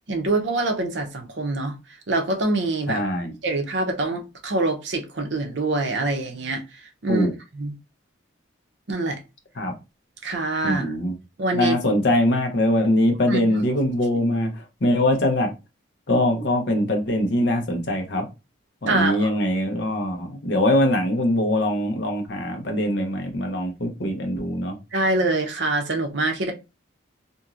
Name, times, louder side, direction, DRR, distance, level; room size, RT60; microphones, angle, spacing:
voice 1, 0.1-1.8 2.1-3.1 3.4-6.6 7.0-7.3 7.5-7.7 8.9-9.2 10.2-10.9 11.4-11.7 13.3-13.6 18.9-19.3 24.9-26.5, right 2 dB, 60° right, 0.6 m, -25 dB
voice 2, 2.9-3.3 7.1-7.3 9.6-9.7 10.6-11.1 11.5-15.5 16.1-18.3 18.8-24.8, left 1 dB, 60° left, 0.8 m, -22 dB
2.9 x 2.6 x 2.4 m
head